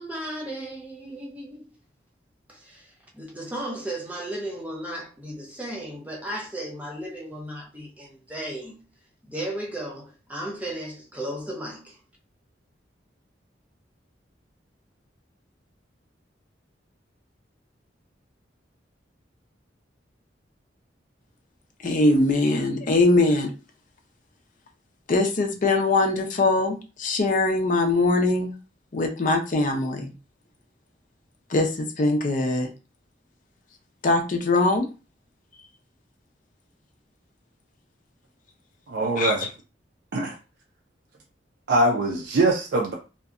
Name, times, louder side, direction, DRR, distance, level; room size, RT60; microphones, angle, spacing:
voice 1, 0.0-1.7 2.5-8.8 9.2-12.0, right 1 dB, 10° right, 0.5 m, -35 dB
voice 2, 21.8-23.5 25.1-28.5 28.9-30.1 31.5-32.7 34.0-34.9 39.2-39.3, left 2 dB, 45° left, 0.5 m, -22 dB
voice 3, 38.9-39.5 40.1-40.4 41.7-42.9, right 2 dB, 65° right, 0.4 m, -22 dB
2.7 x 2.2 x 2.4 m
head